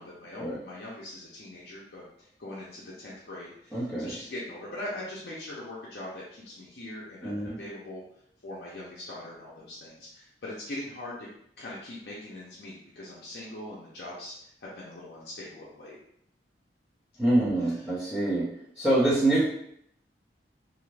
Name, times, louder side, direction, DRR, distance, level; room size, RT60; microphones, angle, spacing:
voice 1, 0.0-8.0 8.4-11.3 11.6-16.0 17.4-17.8, left 1 dB, 60° left, -6 dB, 0.6 m, -41 dB
voice 2, 3.7-4.1 7.2-7.6 17.2-18.5 18.8-19.4, right 1 dB, 5° right, -14 dB, 0.9 m, -25 dB
2.7 x 2.4 x 3.2 m, 0.71 s
head